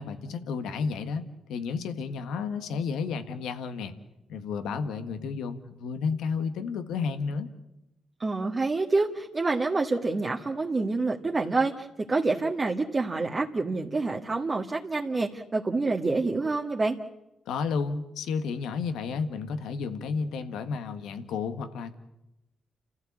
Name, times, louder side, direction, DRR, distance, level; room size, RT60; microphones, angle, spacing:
voice 1, 0.0-3.9 4.3-7.5 17.5-21.9, left 5 dB, 85° left, 9 dB, 1.6 m, -32 dB
voice 2, 8.2-17.0, right 3 dB, 40° right, 0 dB, 1.8 m, -27 dB
29.5 x 14.5 x 8.6 m, 0.92 s
supercardioid pair, 50°, 0 cm